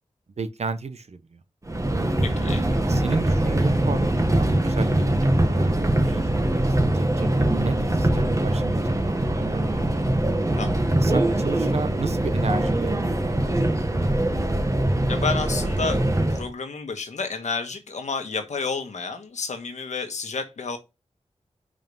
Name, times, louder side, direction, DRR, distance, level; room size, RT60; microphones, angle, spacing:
voice 1, 0.4-1.4 2.7-5.0 5.5-9.8 11.0-14.0, right 4 dB, 65° right, 0.9 m, -34 dB
Subway metro underground, 1.7-16.5, right 1 dB, 25° right, 1.4 m, -22 dB
voice 2, 2.2-2.6 10.6-10.8 15.1-16.0 16.3-20.8, left 4 dB, 85° left, 1.4 m, -30 dB
5.7 x 5.0 x 5.4 m
wide cardioid pair, 65°, 12 cm